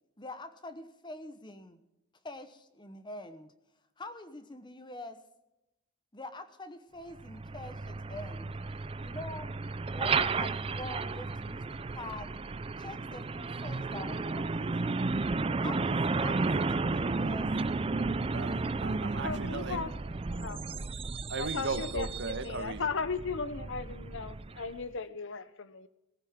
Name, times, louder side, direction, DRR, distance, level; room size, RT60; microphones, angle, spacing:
voice 1, 0.2-1.8 2.2-3.5 4.0-5.2 6.1-8.5 9.0-9.6 9.9-12.3 12.8-15.0 15.6-17.5, left 2 dB, 20° left, 10 dB, 1.0 m, -45 dB
Truck, 7.2-24.8, right 3 dB, 25° right, 0.4 m, -33 dB
voice 2, 18.3-19.8 21.3-22.9, right 3 dB, 55° right, 10 dB, 1.2 m, -37 dB
voice 3, 19.2-19.9 20.4-20.6 21.4-22.1 22.4-25.9, left 4 dB, 60° left, 14 dB, 0.8 m, -36 dB
18.0 x 15.0 x 3.7 m, 0.92 s
head